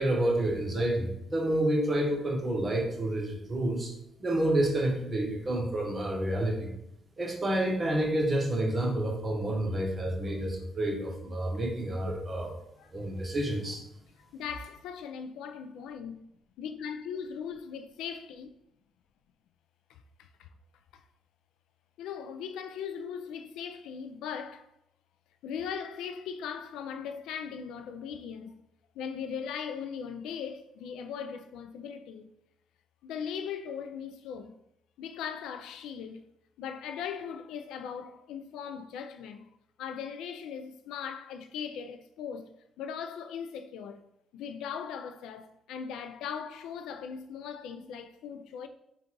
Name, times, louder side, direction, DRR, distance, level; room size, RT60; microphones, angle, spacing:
voice 1, 0.0-3.9 4.2-6.7 7.2-12.5 12.9-13.8, right 1 dB, 30° right, 1.0 m, -29 dB
voice 2, 14.2-16.2 16.6-18.5 19.9-20.5 20.9-21.0 22.0-24.7 25.4-28.5 29.0-32.3 33.0-34.6 35.0-36.2 36.6-39.5 39.8-44.0 44.3-48.7, left 7 dB, 90° left, 0.3 m, -39 dB
3.8 x 2.3 x 4.5 m
cardioid pair, 90°, 0 cm